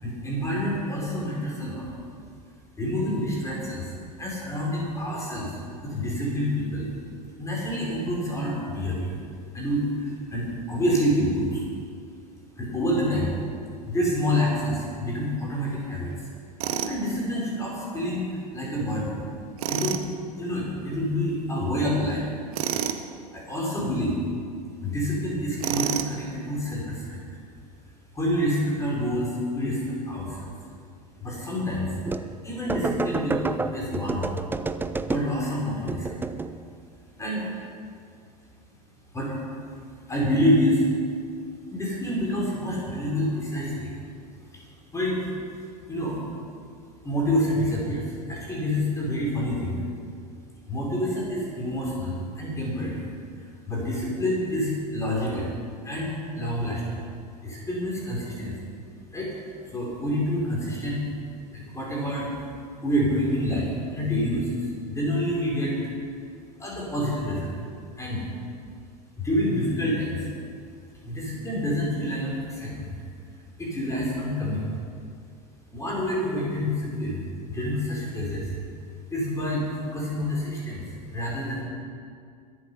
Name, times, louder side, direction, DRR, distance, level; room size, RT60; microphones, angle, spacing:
voice 1, 0.0-1.9 2.8-6.9 7.4-9.1 9.5-11.6 12.6-13.3 13.8-16.3 16.8-19.2 19.7-20.0 20.4-22.2 23.3-24.2 24.8-27.2 28.1-30.5 31.2-32.0 32.4-34.4 35.1-36.1 37.2-37.4 39.1-39.3 40.1-40.9 41.7-43.9 44.3-44.6 44.9-45.2 45.9-46.2 47.0-49.8 50.7-53.1 53.4-55.5 55.8-57.0 57.4-58.6 59.1-59.3 59.7-61.1 61.5-62.4 62.8-65.7 66.6-67.6 68.0-68.3 69.2-70.3 71.0-73.0 73.6-74.8 75.7-78.5 79.1-80.8 81.1-81.6, equal, 15° left, -4 dB, 4.7 m, -27 dB
Tools, 16.6-17.0 19.6-20.1 22.5-23.0 25.6-26.2, right 10 dB, 60° right, 1.0 m, -28 dB
sound 1, 32.0-32.4 32.7-35.5 35.9-36.6, right 3 dB, 10° right, 0.6 m, -30 dB
22.5 x 8.1 x 5.7 m, 2.3 s
figure-of-eight pair, 85°, 21 cm